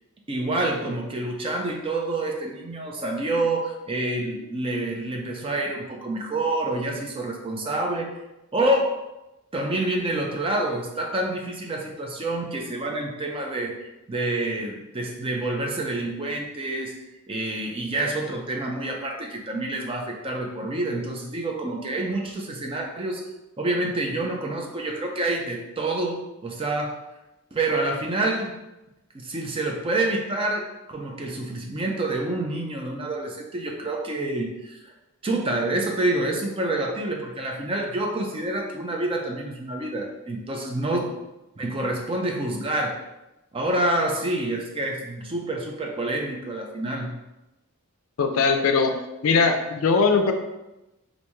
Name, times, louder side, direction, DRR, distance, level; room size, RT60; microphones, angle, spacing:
voice 1, 0.3-8.1 8.5-8.9 9.5-16.9 17.3-23.2 23.6-27.0 27.5-28.5 29.1-34.9 35.2-41.1 41.6-42.9 43.5-47.1, right 2 dB, 25° right, 1 dB, 0.4 m, -27 dB
voice 2, 48.2-48.9 49.2-50.3, left 4 dB, 65° left, 5 dB, 0.4 m, -20 dB
3.3 x 2.6 x 3.0 m, 0.97 s
head